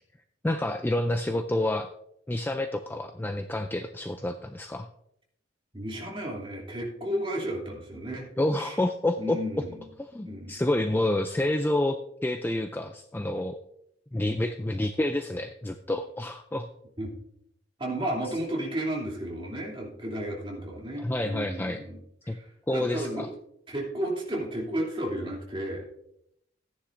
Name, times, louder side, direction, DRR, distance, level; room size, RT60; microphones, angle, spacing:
voice 1, 0.4-1.9 2.3-4.9 8.4-9.4 10.0-12.0 12.2-13.6 14.1-16.7 21.0-21.8 22.3-22.4 22.7-23.3, left 1 dB, 10° left, 7 dB, 0.3 m, -28 dB
voice 2, 5.7-8.3 8.6-8.8 9.2-9.9 10.2-10.5 17.0-17.1 17.8-22.0 22.2-23.3 23.7-25.8, right 1 dB, 25° right, -2 dB, 2.8 m, -33 dB
14.5 x 9.9 x 2.6 m, 0.76 s
head